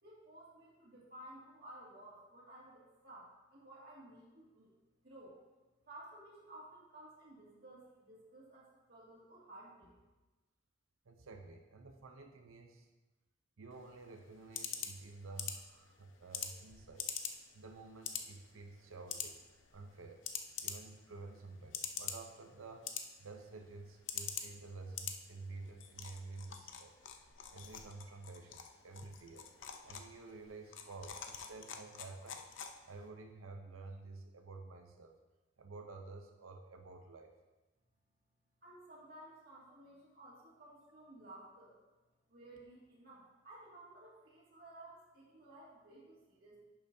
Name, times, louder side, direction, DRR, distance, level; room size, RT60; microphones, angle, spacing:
voice 1, 0.0-4.7 5.0-5.4 5.9-9.9 38.6-41.8 42.3-46.6, right 1 dB, 50° right, -5 dB, 2.2 m, -55 dB
voice 2, 11.1-12.9 13.6-17.1 17.5-19.4 19.7-20.2 20.6-22.9 23.2-27.0 27.5-29.5 29.8-32.4 32.8-35.1 35.6-37.3, right 3 dB, 90° right, 5 dB, 0.7 m, -51 dB
sound 1, 13.7-33.1, left 8 dB, 70° left, 0.6 m, -46 dB
10.5 x 7.0 x 2.7 m, 1.1 s
head